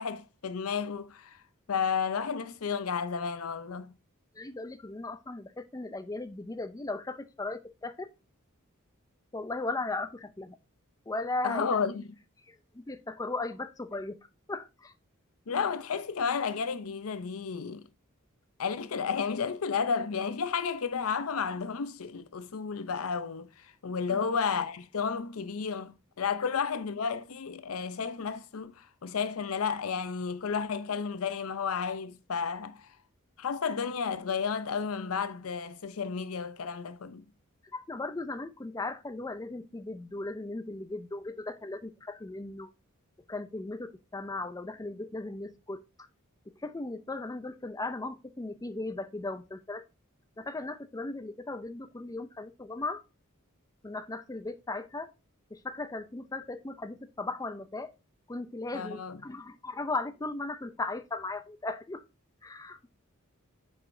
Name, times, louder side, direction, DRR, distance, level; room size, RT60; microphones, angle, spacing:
voice 1, 0.0-1.4 1.7-3.9 11.4-12.1 15.5-17.9 18.6-32.9 33.4-37.2 58.7-59.2, left 6 dB, 80° left, 0.6 m, -32 dB
voice 2, 4.4-8.1 9.3-10.6 11.1-11.8 12.5-14.2 14.5-14.9 24.1-24.2 37.7-42.7 43.3-45.8 46.6-49.8 50.4-53.0 53.8-55.1 55.5-57.9 58.3-62.0 62.4-62.8, left 2 dB, 15° left, 0.5 m, -37 dB
9.0 x 4.8 x 2.6 m
head